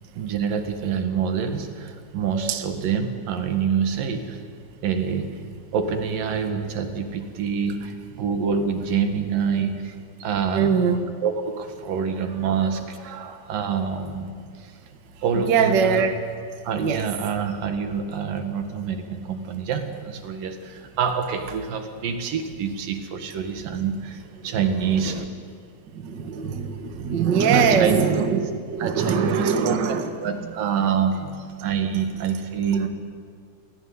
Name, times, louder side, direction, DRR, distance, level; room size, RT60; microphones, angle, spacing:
voice 1, 0.2-4.4 4.8-5.3 5.7-10.8 11.2-14.7 15.2-16.0 16.6-25.2 27.4-28.0 28.8-32.9, right 6 dB, 70° right, 7 dB, 3.4 m, -26 dB
voice 2, 10.5-11.0 15.3-16.2 16.8-17.0 25.9-30.4, right 6 dB, 45° right, 7 dB, 1.5 m, -22 dB
28.5 x 18.0 x 9.6 m, 2.2 s
omnidirectional pair, 4.3 m